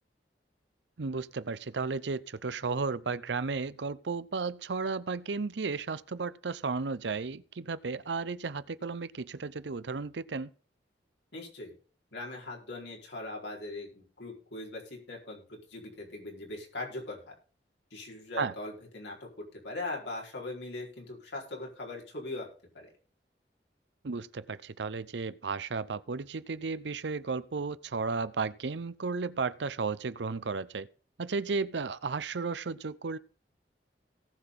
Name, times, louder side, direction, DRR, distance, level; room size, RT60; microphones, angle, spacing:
voice 1, 1.0-10.5 18.4-18.5 24.0-30.9 31.2-33.2, right 4 dB, 85° right, 0.7 m, -34 dB
voice 2, 11.3-11.7 12.1-17.2 17.9-22.5 22.7-22.9, left 2 dB, 85° left, 4.4 m, -40 dB
18.0 x 6.1 x 3.8 m
head